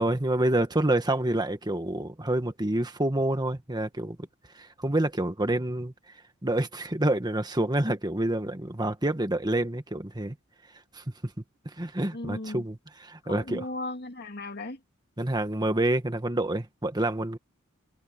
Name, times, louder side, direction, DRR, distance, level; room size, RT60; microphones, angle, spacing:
voice 1, 0.0-4.2 4.6-5.9 6.4-10.3 10.9-11.0 11.8-12.8 13.0-13.7 15.2-17.4, right 1 dB, 20° right, 1.7 m, -27 dB
voice 2, 12.1-12.7 13.2-14.8, left 2 dB, 50° left, 2.4 m, -36 dB
head